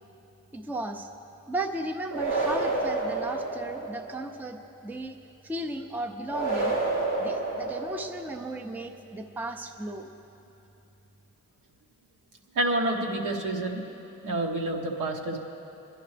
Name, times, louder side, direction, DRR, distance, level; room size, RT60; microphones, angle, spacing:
voice 1, 0.5-1.1 1.5-5.2 5.4-6.8 7.2-10.1, right 1 dB, 5° right, 5 dB, 0.5 m, -35 dB
sound 1, 2.1-4.2 6.3-8.4, right 2 dB, 90° right, 3.1 m, -29 dB
voice 2, 12.5-13.9 14.2-15.4, right 1 dB, 70° right, 1 dB, 1.3 m, -28 dB
22.0 x 11.0 x 3.3 m, 2.9 s
cardioid pair, 135°, 32 cm